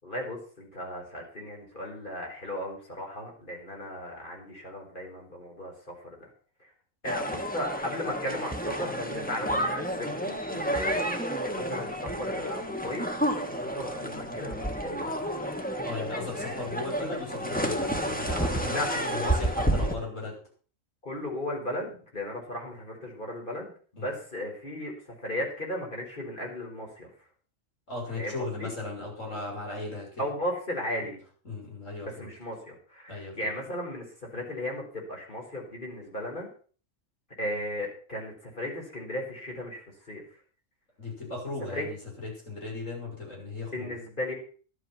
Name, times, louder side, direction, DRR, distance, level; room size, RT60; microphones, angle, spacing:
voice 1, 0.0-6.3 7.0-11.2 11.4-13.2 13.6-15.0 18.7-18.9 19.1-19.3 21.0-24.9 25.2-27.1 28.2-28.7 30.2-31.2 32.0-36.5 37.4-40.2 41.7-41.8 43.7-44.3, left 1 dB, 40° left, 0 dB, 4.9 m, -36 dB
sound 1, 7.0-19.9, equal, 5° left, 1.5 m, -30 dB
voice 2, 15.8-20.3 24.0-24.1 27.9-30.3 31.4-32.3 33.1-33.5 41.0-44.0, left 2 dB, 70° left, -2 dB, 6.6 m, -37 dB
12.5 x 11.5 x 5.8 m, 0.41 s
omnidirectional pair, 1.4 m